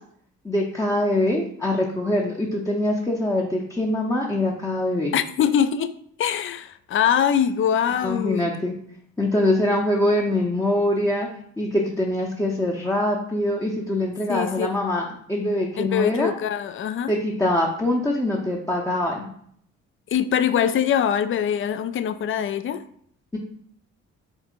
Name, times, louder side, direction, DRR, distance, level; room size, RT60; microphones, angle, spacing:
voice 1, 0.4-5.1 8.0-8.7 9.2-11.3 11.6-16.3 17.1-19.3 23.3-23.4, left 1 dB, 10° left, -2 dB, 0.7 m, -23 dB
voice 2, 5.1-5.9 6.2-8.4 14.3-14.7 15.8-17.1 20.1-22.8, left 8 dB, 35° left, 13 dB, 0.4 m, -23 dB
4.5 x 3.4 x 2.5 m, 0.65 s
hypercardioid pair, 40°, 39 cm